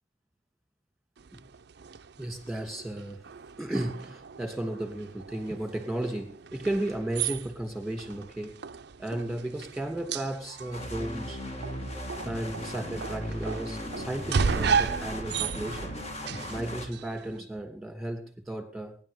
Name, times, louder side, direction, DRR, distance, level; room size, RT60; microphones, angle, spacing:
sound 1, 1.2-17.4, right 6 dB, 60° right, 0.5 m, -35 dB
voice 1, 2.2-3.2 3.6-8.6 9.0-11.4 12.2-15.9 16.5-19.0, right 1 dB, ahead, 2.6 m, -34 dB
sound 2, 10.7-16.9, left 1 dB, 35° left, 2.0 m, -37 dB
24.0 x 10.5 x 3.5 m
head